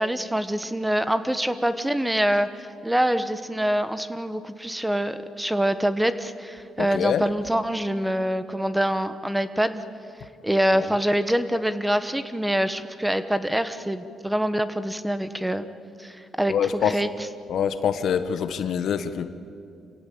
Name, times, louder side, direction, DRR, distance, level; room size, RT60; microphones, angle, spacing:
voice 1, 0.0-9.8 10.4-15.6 16.0-17.1, equal, 5° right, 11 dB, 1.2 m, -25 dB
voice 2, 6.8-7.2 10.8-10.9 16.5-17.0 17.5-19.3, left 8 dB, 65° left, 11 dB, 1.3 m, -25 dB
27.0 x 16.5 x 8.7 m, 2.5 s
cardioid pair, 90°, 0 cm